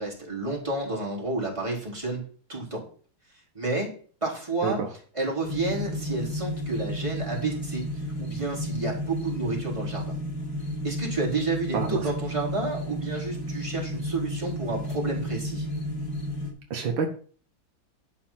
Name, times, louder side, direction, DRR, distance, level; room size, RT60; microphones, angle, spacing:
voice 1, 0.0-2.2 2.5-2.8 3.5-3.9 4.2-4.8 5.1-7.8 8.2-10.1 10.8-15.7, right 3 dB, 15° right, -3 dB, 4.1 m, -30 dB
sound 1, 5.4-16.5, equal, 65° left, 4.1 m, -32 dB
voice 2, 16.7-17.1, right 6 dB, 75° right, 3 dB, 2.1 m, -27 dB
12.0 x 6.0 x 5.8 m, 0.43 s
omnidirectional pair, 2.1 m